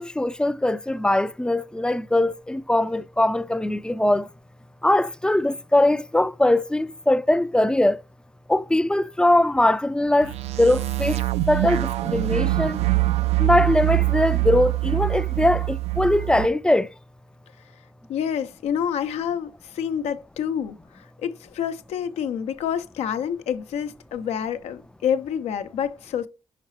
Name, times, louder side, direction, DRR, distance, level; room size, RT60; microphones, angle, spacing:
voice 1, 0.0-4.3 4.8-8.0 8.5-10.3 10.6-11.2 11.5-12.8 13.4-16.9, left 1 dB, 10° left, 0.3 m, -21 dB
sound 1, 10.2-16.5, right 18 dB, 80° right, 0.4 m, -24 dB
voice 2, 18.1-26.3, left 8 dB, 85° left, 0.6 m, -28 dB
5.7 x 5.6 x 3.1 m
cardioid pair, 90°, 11 cm